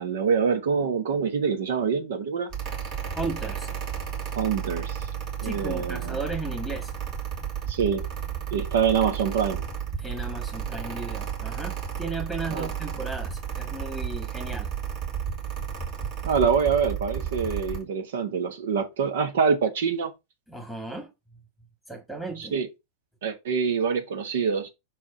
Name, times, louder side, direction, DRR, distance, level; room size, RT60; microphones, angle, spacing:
voice 1, 0.0-2.5 4.4-5.1 5.4-6.2 7.7-8.0 8.5-9.6 12.5-12.7 16.2-20.1 22.4-22.7 23.2-24.7, right 6 dB, 60° right, 1.2 m, -25 dB
Mechanical fan, 2.5-17.8, right 8 dB, 40° right, 2.6 m, -33 dB
voice 2, 3.2-3.7 5.4-6.9 10.0-14.7 20.5-21.1 21.9-22.5, right 2 dB, 5° right, 1.9 m, -35 dB
5.9 x 4.7 x 4.1 m
figure-of-eight pair, 90°, 0 cm